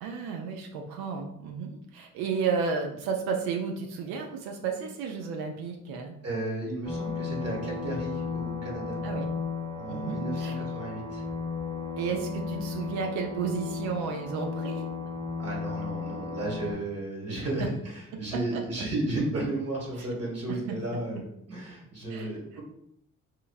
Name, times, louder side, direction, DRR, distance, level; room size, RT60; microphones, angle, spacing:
voice 1, 0.0-6.2 9.0-9.3 9.9-10.6 12.0-14.8 18.3-18.6 20.0-20.1 20.5-20.6 22.1-22.3, right 5 dB, 75° right, 3 dB, 0.5 m, -32 dB
voice 2, 6.2-9.0 9.7-11.2 15.4-21.2 21.5-22.6, right 2 dB, 40° right, -3 dB, 1.3 m, -33 dB
sound 1, 6.8-16.7, left 4 dB, 10° left, 0.8 m, -34 dB
2.9 x 2.3 x 2.3 m, 0.76 s
hypercardioid pair, 45°, 38 cm